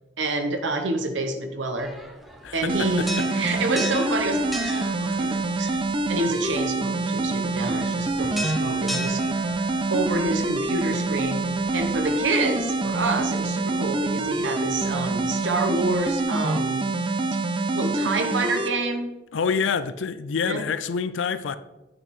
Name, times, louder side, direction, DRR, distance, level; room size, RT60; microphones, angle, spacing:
voice 1, 0.2-1.9 2.5-5.7 6.1-9.2 9.9-11.4 11.7-16.8 17.7-19.1 20.4-20.6, right 2 dB, 80° right, 5 dB, 1.0 m, -28 dB
sound 1, 1.8-16.2, equal, ahead, 0.8 m, -39 dB
voice 2, 2.4-3.2 19.3-21.6, left 6 dB, 80° left, 13 dB, 0.4 m, -27 dB
sound 2, 2.7-18.7, right 2 dB, 25° right, 0.6 m, -26 dB
8.2 x 6.4 x 4.3 m, 1.0 s
head